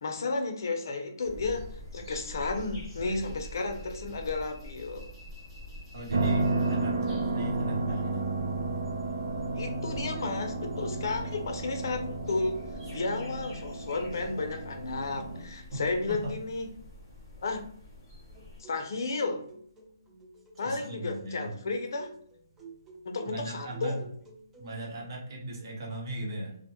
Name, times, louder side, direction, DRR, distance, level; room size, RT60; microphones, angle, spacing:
voice 1, 0.0-5.1 9.5-12.6 12.9-16.7 17.4-17.7 18.6-19.4 20.6-22.1 23.0-24.0, left 3 dB, 60° left, 5 dB, 0.5 m, -33 dB
sound 1, 1.2-18.6, left 1 dB, 10° left, 1.1 m, -47 dB
voice 2, 5.9-8.3 15.7-16.3 20.6-21.5 23.3-24.0 24.6-26.6, right 1 dB, 55° right, -2 dB, 0.9 m, -38 dB
sound 2, 6.1-15.5, right 3 dB, 85° right, 0.4 m, -32 dB
sound 3, 18.3-25.1, right 3 dB, 10° right, 0.4 m, -52 dB
2.1 x 2.1 x 2.8 m, 0.63 s
hypercardioid pair, 160°, 2 cm